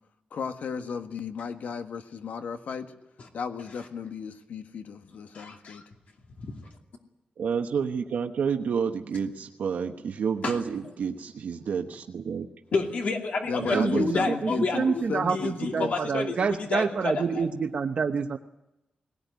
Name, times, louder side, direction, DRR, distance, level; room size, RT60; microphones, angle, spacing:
voice 1, 0.3-2.9 3.3-5.8 13.5-15.9, left 5 dB, 90° left, 1.5 m, -34 dB
voice 2, 5.3-5.8 6.4-6.7 10.4-10.6 12.7-15.0 15.3-17.5, left 4 dB, 65° left, 2.6 m, -30 dB
voice 3, 7.4-12.5 13.6-14.3, right 6 dB, 85° right, 1.2 m, -30 dB
voice 4, 13.7-18.4, right 5 dB, 50° right, 0.9 m, -27 dB
19.5 x 18.0 x 9.4 m
wide cardioid pair, 170°, 3 cm